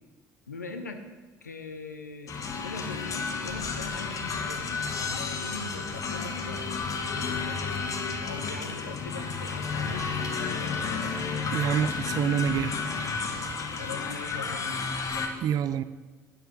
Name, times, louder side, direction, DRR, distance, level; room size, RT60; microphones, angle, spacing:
voice 1, 0.5-1.0 1.4-11.2 13.8-14.8, left 4 dB, 85° left, 0.7 m, -42 dB
sound 1, 2.3-15.3, left 5 dB, 35° left, 1.2 m, -32 dB
voice 2, 11.5-12.7 15.4-15.8, right 9 dB, 45° right, 0.4 m, -26 dB
11.0 x 8.8 x 3.9 m
figure-of-eight pair, 55°, 9 cm